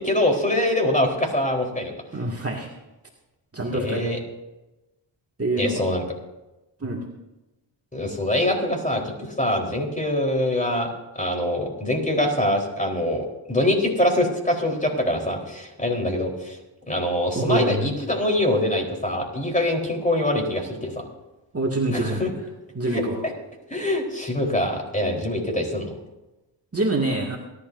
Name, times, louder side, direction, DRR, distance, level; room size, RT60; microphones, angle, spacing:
voice 1, 0.0-1.9 3.7-4.2 5.6-6.0 7.9-16.6 16.9-21.0 21.9-22.3 22.9-23.0 23.7-25.9, left 1 dB, 15° left, 1 dB, 4.1 m, -24 dB
voice 2, 2.1-2.7 3.5-4.0 5.4-5.8 6.8-7.0 17.4-17.9 21.5-22.2 22.7-23.2 26.7-27.4, right 2 dB, 30° right, -1 dB, 2.3 m, -25 dB
27.5 x 12.0 x 2.7 m, 1.0 s
supercardioid pair, 45°, 49 cm